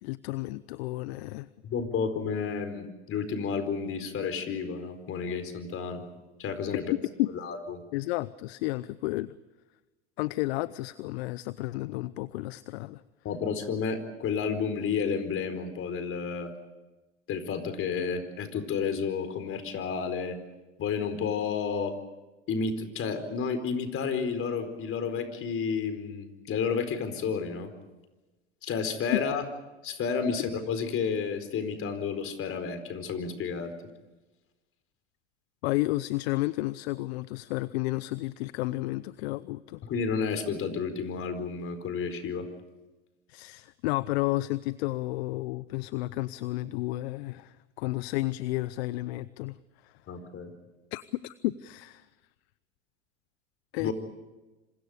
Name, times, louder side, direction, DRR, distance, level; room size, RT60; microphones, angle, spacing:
voice 1, 0.0-1.5 7.2-7.3 7.9-9.3 10.2-13.0 35.6-39.8 43.3-49.6 49.8-49.9 50.9-52.1 53.7-53.9, left 19 dB, 60° left, 0.8 m, -32 dB
voice 2, 1.6-6.0 6.4-6.8 7.4-7.8 13.2-16.5 17.3-20.4 20.8-21.9 22.5-27.7 28.6-29.4 29.8-33.7 39.8-42.5 50.1-50.5 53.8-53.9, left 6 dB, 40° left, 4.5 m, -31 dB
27.5 x 26.5 x 5.1 m
hypercardioid pair, 95°, 35 cm